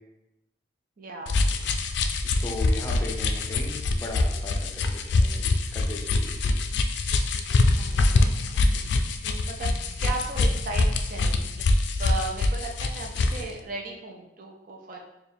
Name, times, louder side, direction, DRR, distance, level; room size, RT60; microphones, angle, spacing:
voice 1, 1.0-1.6 7.7-8.2 8.5-9.7 10.0-11.7 12.0-15.0, right 2 dB, 50° right, 0 dB, 0.5 m, -37 dB
sound 1, 1.3-13.5, left 2 dB, 70° left, 0.3 m, -24 dB
voice 2, 2.4-6.5, left 1 dB, 15° left, -2 dB, 0.5 m, -37 dB
4.3 x 2.3 x 3.4 m, 0.90 s
head